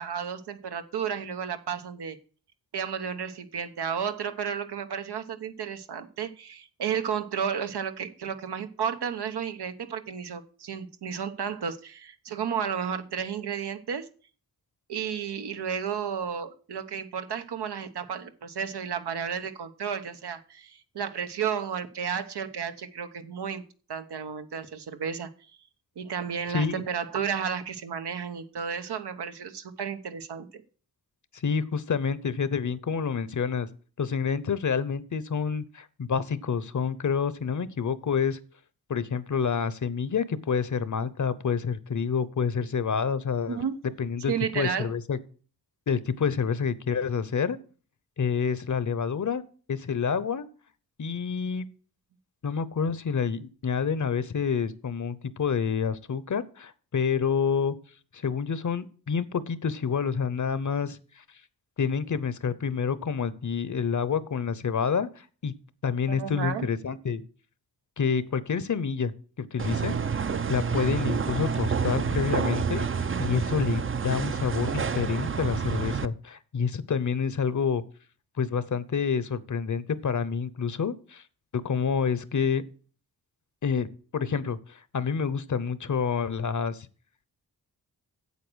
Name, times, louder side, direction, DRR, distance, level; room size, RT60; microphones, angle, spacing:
voice 1, 0.0-2.2 2.7-14.1 14.9-23.6 23.9-25.3 26.0-30.6 43.5-43.8 44.3-44.9 66.1-66.7, right 7 dB, 90° right, 8 dB, 1.0 m, -32 dB
voice 2, 26.5-26.8 31.3-33.7 34.0-38.4 38.9-43.6 44.0-45.2 45.9-47.6 48.2-49.4 49.7-50.5 51.0-51.7 52.4-57.7 58.1-61.0 61.8-65.5 65.8-67.2 68.0-70.0 70.5-77.8 78.4-81.2 81.5-82.6 83.6-86.9, left 6 dB, 50° left, 16 dB, 0.8 m, -28 dB
sound 1, 69.6-76.1, right 6 dB, 35° right, 0.5 m, -28 dB
8.4 x 7.8 x 6.2 m, 0.40 s
wide cardioid pair, 95°, 39 cm